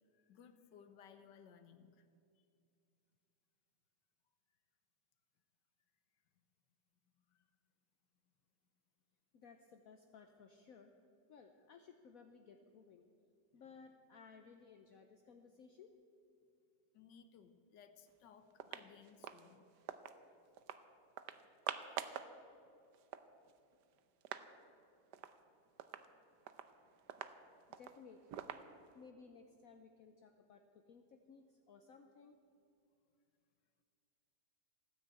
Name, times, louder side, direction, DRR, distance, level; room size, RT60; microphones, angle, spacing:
voice 1, 0.1-2.1 7.2-7.5 13.5-13.7 16.9-19.7, left 7 dB, 85° left, 10 dB, 1.6 m, -61 dB
voice 2, 9.3-10.9 11.3-13.1 13.5-16.0 27.7-28.5 28.9-32.4, left 5 dB, 60° left, 5 dB, 1.1 m, -59 dB
sound 1, 18.1-18.2 18.5-20.2 20.6-20.8 21.2-22.3 22.7-22.8 22.9-24.5 24.8-24.9 25.1-25.4 25.8-29.1, right 10 dB, 80° right, 1.3 m, -47 dB
16.0 x 9.8 x 8.4 m, 2.5 s
omnidirectional pair, 1.8 m